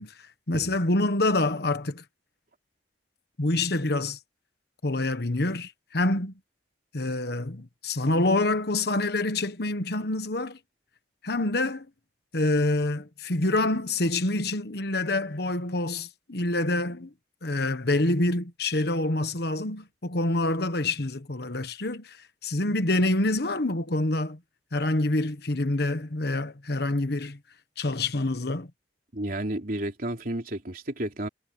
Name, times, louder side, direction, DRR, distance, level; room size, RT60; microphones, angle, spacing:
voice 1, 0.0-2.0 3.4-4.2 4.8-6.3 6.9-10.6 11.2-11.9 12.3-17.1 17.4-24.4 24.7-27.4 27.8-28.7, left 2 dB, 60° left, 1.3 m, -26 dB
voice 2, 29.1-31.3, right 1 dB, 50° right, 3.5 m, -32 dB
head